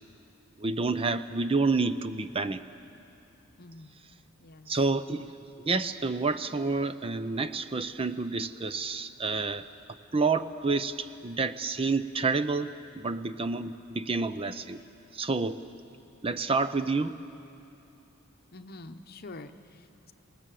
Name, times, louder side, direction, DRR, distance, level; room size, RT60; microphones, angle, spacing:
voice 1, 0.6-2.6 4.7-5.3 5.6-9.7 10.1-12.7 12.9-14.8 15.1-15.6 16.2-17.2, right 3 dB, 25° right, 12 dB, 0.5 m, -29 dB
voice 2, 3.6-3.9 4.4-4.7 18.5-20.1, left 2 dB, 45° left, 9 dB, 0.9 m, -46 dB
28.0 x 18.5 x 7.6 m, 2.8 s
head